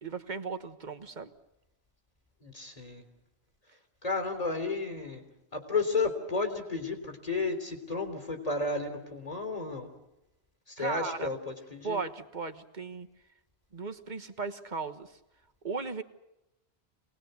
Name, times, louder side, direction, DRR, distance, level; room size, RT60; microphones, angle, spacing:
voice 1, 0.0-1.3 10.8-11.3 11.8-13.1 13.7-15.1 15.6-16.0, right 4 dB, 45° right, 8 dB, 1.5 m, -36 dB
voice 2, 2.4-3.0 4.0-5.2 5.5-9.9 10.7-12.0, left 3 dB, 35° left, 5 dB, 3.7 m, -32 dB
27.0 x 20.0 x 8.2 m, 0.92 s
omnidirectional pair, 1.1 m